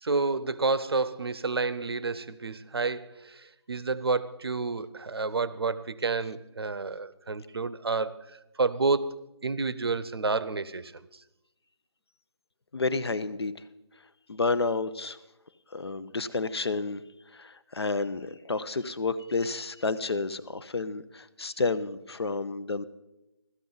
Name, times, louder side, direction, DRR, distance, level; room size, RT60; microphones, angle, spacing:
voice 1, 0.0-8.2 8.6-9.1 9.4-10.9, right 3 dB, 60° right, 0.7 m, -29 dB
voice 2, 12.7-13.5 14.3-15.2 15.7-17.0 17.3-22.8, left 3 dB, 60° left, 0.8 m, -30 dB
16.5 x 13.0 x 4.0 m
figure-of-eight pair, 175°, 15 cm